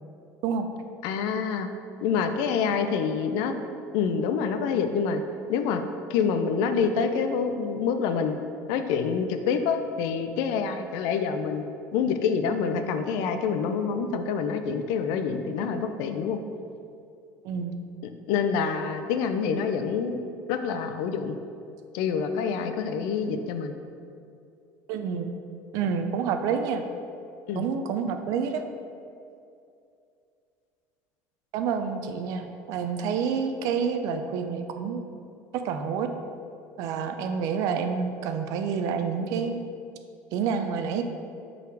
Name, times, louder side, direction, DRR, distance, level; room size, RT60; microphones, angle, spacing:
voice 1, 1.0-1.7 2.0-3.5 3.9-5.2 5.5-5.8 6.1-8.4 8.7-11.6 11.9-16.4 18.0-20.2 20.5-21.4 21.9-23.7 27.5-27.7, left 6 dB, 75° left, 8 dB, 0.5 m, -27 dB
voice 2, 17.4-17.8 24.9-25.3 25.7-26.8 27.5-28.6 31.5-35.0 35.5-36.1 36.8-39.6 40.3-41.0, right 6 dB, 65° right, 7 dB, 0.5 m, -28 dB
5.6 x 4.1 x 4.7 m, 2.5 s
cardioid pair, 145°, 6 cm